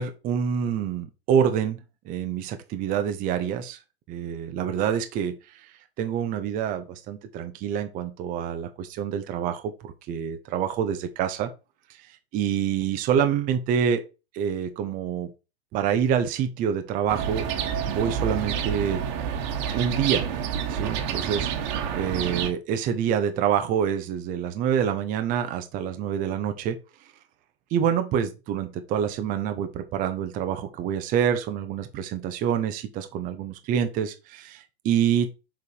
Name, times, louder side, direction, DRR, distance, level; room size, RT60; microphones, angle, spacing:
voice 1, 0.0-1.8 2.1-3.8 4.1-5.6 6.0-11.5 12.3-14.0 14.3-15.3 15.7-17.5 17.9-19.1 19.7-20.3 20.7-26.8 27.7-35.3, right 8 dB, 25° right, 0.7 m, -26 dB
sound 1, 17.1-22.5, right 8 dB, 45° right, 1.4 m, -28 dB
7.0 x 3.4 x 4.6 m
hypercardioid pair, 130°, 32 cm